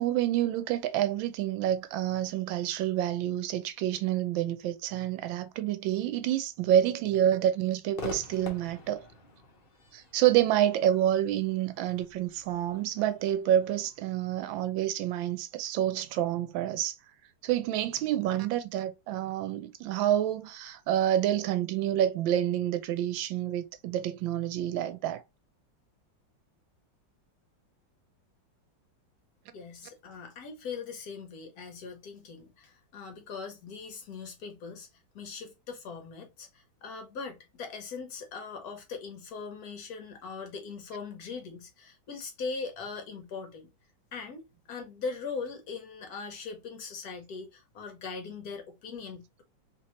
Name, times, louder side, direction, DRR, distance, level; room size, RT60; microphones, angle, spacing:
voice 1, 0.0-9.0 9.9-17.0 17.4-25.2, right 11 dB, 90° right, 1.3 m, -28 dB
Crowd / Fireworks, 7.9-15.3, left 2 dB, 45° left, 0.7 m, -47 dB
voice 2, 29.5-34.9 35.1-43.7 44.1-49.4, left 5 dB, 65° left, 1.1 m, -40 dB
3.1 x 3.0 x 2.9 m
omnidirectional pair, 2.1 m